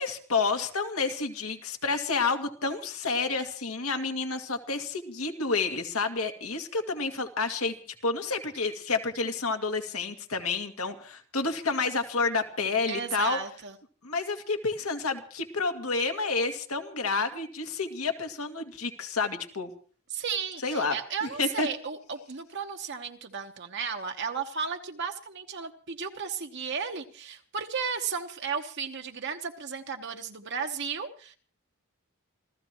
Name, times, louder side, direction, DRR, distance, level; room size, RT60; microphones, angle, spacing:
voice 1, 0.0-7.8 8.0-13.4 14.0-19.7 20.6-21.0 21.2-21.7, left 4 dB, 75° left, 5 dB, 2.2 m, -29 dB
voice 2, 12.9-13.8 20.1-31.4, right 6 dB, 55° right, 4 dB, 1.1 m, -34 dB
27.5 x 15.5 x 3.0 m, 0.41 s
head